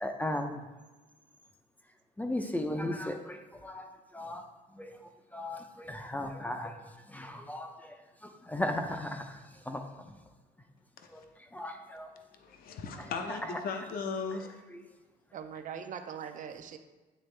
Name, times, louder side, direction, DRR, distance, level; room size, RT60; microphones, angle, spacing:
voice 1, 0.0-0.6 2.2-3.9 4.1-4.4 4.8-4.9 5.3-6.8 7.1-7.7 8.5-9.2 9.7-9.8 11.1-11.2 11.5-12.1, left 1 dB, 10° left, 5 dB, 0.5 m, -35 dB
voice 2, 12.4-14.6, left 5 dB, 60° left, 5 dB, 0.7 m, -37 dB
voice 3, 15.3-16.8, right 7 dB, 50° right, 8 dB, 0.6 m, -41 dB
8.9 x 3.5 x 3.3 m, 1.2 s
cardioid pair, 110°, 17 cm